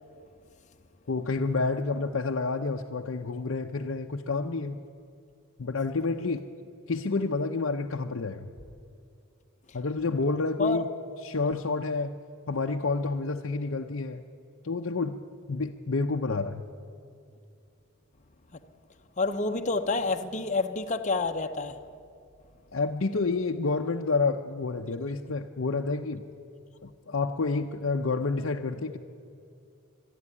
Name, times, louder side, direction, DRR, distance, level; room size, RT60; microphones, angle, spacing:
voice 1, 1.1-4.8 5.6-6.4 6.9-8.5 9.7-10.8 11.2-12.1 12.5-14.2 14.6-15.2 15.5-16.7 22.7-26.2 26.8-29.0, left 3 dB, 65° left, 0.7 m, -29 dB
voice 2, 19.2-21.8, left 3 dB, 35° left, 0.8 m, -28 dB
25.0 x 11.0 x 9.7 m
head